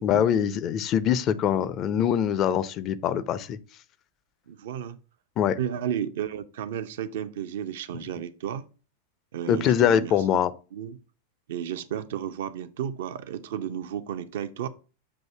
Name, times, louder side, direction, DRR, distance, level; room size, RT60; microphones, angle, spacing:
voice 1, 0.0-3.6 5.4-5.6 9.5-10.5, left 9 dB, 35° left, 0.5 m, -23 dB
voice 2, 4.5-5.0 5.6-8.7 9.3-10.1 10.4-11.0 11.5-14.7, right 9 dB, 55° right, 0.5 m, -33 dB
7.4 x 2.7 x 5.5 m
figure-of-eight pair, 90°, 0 cm